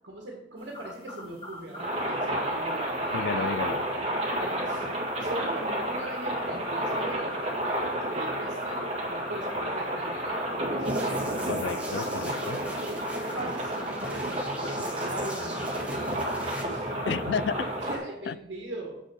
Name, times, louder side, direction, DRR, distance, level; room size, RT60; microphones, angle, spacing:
voice 1, 0.0-3.7 4.4-4.9 5.2-11.5 12.5-16.2 16.7-16.9 17.8-19.0, right 1 dB, 75° right, 1.7 m, -40 dB
sound 1, 0.6-17.9, left 1 dB, 30° left, 1.6 m, -45 dB
sound 2, 1.8-18.0, right 1 dB, 35° right, 1.9 m, -31 dB
voice 2, 3.1-3.9 11.5-12.6 17.1-17.7 18.3-18.4, left 6 dB, 70° left, 0.3 m, -32 dB
sound 3, 10.8-16.6, right 2 dB, 5° right, 1.4 m, -43 dB
7.6 x 6.4 x 4.8 m
head